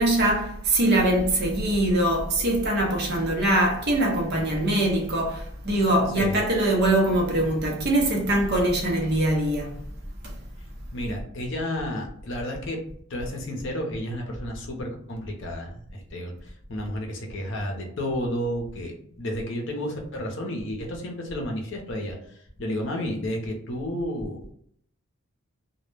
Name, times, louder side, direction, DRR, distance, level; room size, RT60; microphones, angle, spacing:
voice 1, 0.0-9.8 10.2-10.4, right 1 dB, 50° right, 0.7 m, -23 dB
voice 2, 10.9-12.8 13.1-24.5, equal, 60° left, 0.6 m, -32 dB
2.2 x 2.0 x 3.1 m
head